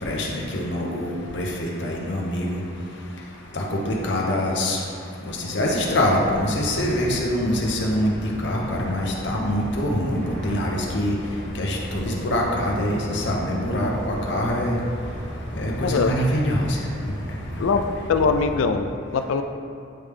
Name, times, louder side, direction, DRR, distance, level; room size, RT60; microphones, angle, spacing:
voice 1, 0.0-2.6 3.5-4.8 5.3-8.1 8.4-11.1 11.6-14.8 15.6-16.6, left 1 dB, 60° left, -2 dB, 0.9 m, -24 dB
sound 1, 5.6-18.7, equal, 55° right, 1.0 m, -35 dB
voice 2, 15.8-16.1 17.6-19.4, left 4 dB, 80° left, 7 dB, 0.4 m, -22 dB
9.0 x 3.3 x 3.4 m, 2.4 s
head